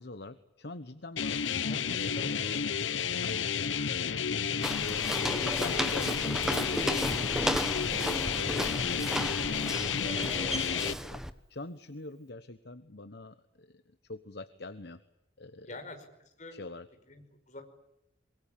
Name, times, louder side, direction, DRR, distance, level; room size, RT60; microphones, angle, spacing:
voice 1, 0.0-2.3 3.1-4.1 5.2-11.2 11.5-15.0 15.4-15.8 16.5-16.9, left 2 dB, 60° left, 11 dB, 1.2 m, -44 dB
sound 1, 1.2-10.9, left 7 dB, 85° left, 0.9 m, -31 dB
voice 2, 1.6-2.7 3.2-3.5 3.8-4.1 4.9-5.9 8.3-8.6 15.7-16.0 16.4-16.6 17.1-17.6, left 1 dB, 40° left, 5 dB, 5.4 m, -46 dB
Walk footsteps, 4.6-11.3, equal, 5° right, 1.1 m, -34 dB
24.5 x 23.0 x 8.7 m, 0.83 s
head